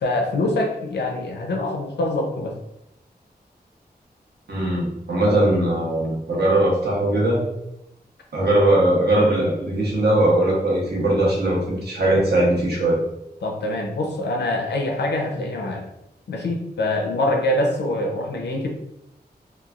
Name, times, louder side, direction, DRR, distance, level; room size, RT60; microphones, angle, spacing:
voice 1, 0.0-2.6 13.4-15.9 16.3-18.7, left 1 dB, 90° left, 2 dB, 0.5 m, -24 dB
voice 2, 4.5-7.5 8.3-13.0, right 1 dB, 75° right, -4 dB, 1.0 m, -20 dB
3.0 x 2.3 x 2.3 m, 0.85 s
wide cardioid pair, 115°, 17 cm